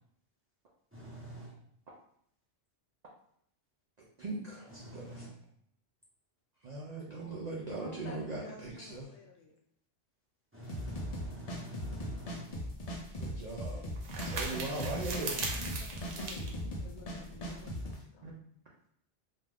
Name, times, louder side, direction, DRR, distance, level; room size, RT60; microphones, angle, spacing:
voice 1, 0.9-1.5 4.7-5.3 10.5-12.4, right 1 dB, 15° right, -7 dB, 0.6 m, -47 dB
voice 2, 4.2-5.2 6.6-9.0 13.2-13.8 14.2-15.4 17.5-17.7 18.2-18.3, right 2 dB, 60° right, -3 dB, 0.4 m, -39 dB
voice 3, 7.8-9.6 15.3-18.3, left 3 dB, 75° left, 0 dB, 0.9 m, -51 dB
sound 1, 10.7-18.0, equal, 50° left, 0.4 m, -39 dB
sound 2, 12.5-17.7, right 3 dB, 85° right, 0.9 m, -41 dB
2.5 x 2.3 x 3.2 m, 0.68 s
omnidirectional pair, 1.2 m